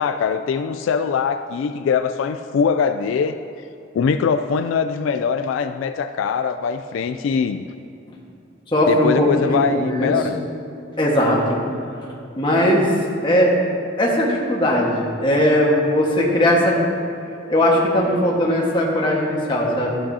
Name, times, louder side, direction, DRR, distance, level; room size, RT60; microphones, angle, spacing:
voice 1, 0.0-3.4 3.9-7.6 8.9-10.5, left 6 dB, 80° left, 9 dB, 0.3 m, -22 dB
voice 2, 8.7-10.1 11.0-11.6 12.4-12.9 13.2-13.5 14.0-16.8 17.5-20.0, equal, 25° left, -3 dB, 1.4 m, -18 dB
13.0 x 8.6 x 2.8 m, 2.7 s
head